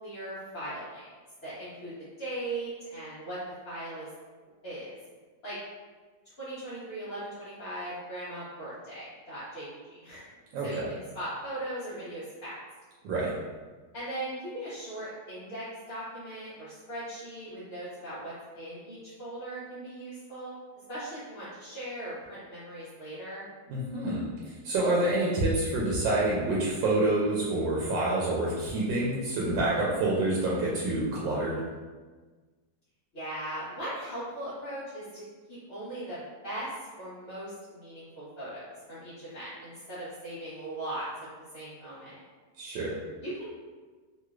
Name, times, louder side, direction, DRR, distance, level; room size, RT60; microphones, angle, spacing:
voice 1, 0.0-1.0 1.4-3.4 3.6-4.1 4.6-5.0 5.4-5.6 6.4-10.3 10.6-12.5 13.9-20.5 20.9-23.4 33.1-35.2 35.5-36.7 37.0-41.1 41.5-42.2 43.2-43.5, right 1 dB, 50° left, -11 dB, 0.8 m, -39 dB
voice 2, 10.5-10.9 13.0-13.3 23.7-31.6 42.6-43.0, right 2 dB, 85° right, -5 dB, 1.3 m, -27 dB
3.1 x 3.0 x 2.4 m, 1.4 s
omnidirectional pair, 1.9 m